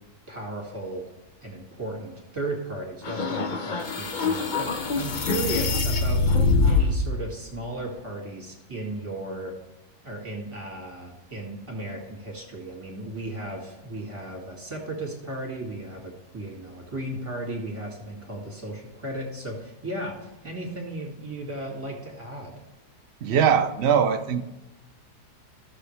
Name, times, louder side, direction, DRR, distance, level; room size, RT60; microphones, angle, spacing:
voice 1, 0.3-1.1 1.4-9.5 10.0-22.6, right 1 dB, 15° right, -1 dB, 2.4 m, -35 dB
sound 1, 3.0-7.1, left 3 dB, 40° left, 0.7 m, -24 dB
voice 2, 23.2-24.4, right 7 dB, 80° right, 7 dB, 0.5 m, -21 dB
15.0 x 6.4 x 3.3 m, 0.99 s
omnidirectional pair, 1.8 m